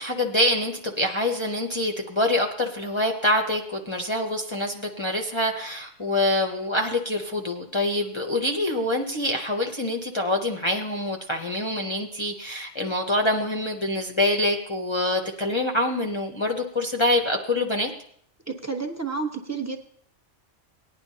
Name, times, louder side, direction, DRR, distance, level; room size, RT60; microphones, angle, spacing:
voice 1, 0.0-17.9, left 1 dB, 25° left, 2 dB, 0.8 m, -25 dB
voice 2, 18.5-19.8, right 4 dB, 15° right, 3 dB, 0.9 m, -30 dB
19.0 x 10.5 x 2.8 m, 0.63 s
omnidirectional pair, 1.3 m